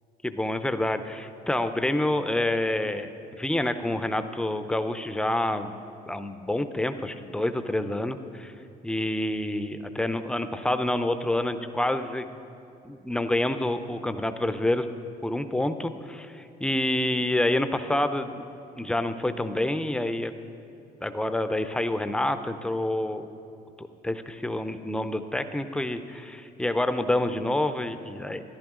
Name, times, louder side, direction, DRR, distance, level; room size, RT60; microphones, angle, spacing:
voice 1, 0.2-3.1 3.4-5.8 6.1-8.5 8.8-12.3 12.8-14.9 15.2-18.5 18.8-20.4 21.0-23.3 23.8-28.4, left 1 dB, 5° left, 10 dB, 0.5 m, -28 dB
13.5 x 11.0 x 3.7 m, 2.6 s
cardioid pair, 110°, 17 cm